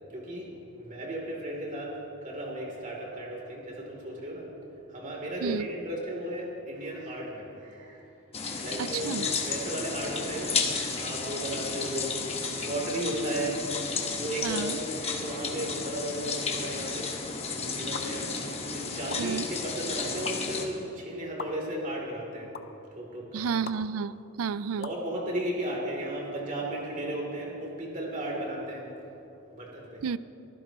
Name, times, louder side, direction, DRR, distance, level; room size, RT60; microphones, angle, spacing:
voice 1, 0.1-0.5 0.8-4.5 4.9-8.0 8.4-9.1 9.5-12.1 12.4-13.6 14.1-14.7 15.0-17.1 17.5-18.3 18.7-22.5 22.9-23.4 24.8-28.9 29.5-30.0, right 1 dB, 35° right, -2 dB, 3.1 m, -35 dB
sound 1, 8.3-20.7, left 4 dB, 30° left, 1.3 m, -33 dB
voice 2, 8.8-9.3 14.4-14.8 19.2-19.4 23.3-24.9 30.0-30.2, right 6 dB, 75° right, 17 dB, 0.4 m, -31 dB
sound 2, 17.9-18.0 19.1-19.2 20.2-20.3 21.4-21.5 22.5-22.6 23.6-23.8 24.8-25.0, left 6 dB, 45° left, 0.6 m, -37 dB
24.0 x 15.0 x 3.0 m, 2.8 s
head